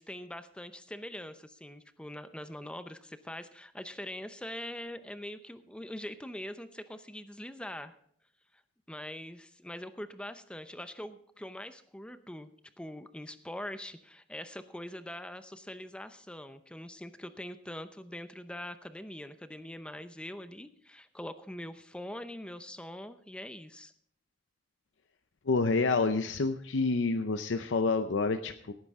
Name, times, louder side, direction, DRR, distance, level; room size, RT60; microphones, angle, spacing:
voice 1, 0.0-7.9 8.9-12.5 12.8-23.9, left 1 dB, 5° left, 10 dB, 0.7 m, -43 dB
voice 2, 25.5-28.7, left 3 dB, 80° left, 8 dB, 0.6 m, -28 dB
17.0 x 9.6 x 3.6 m, 0.64 s
head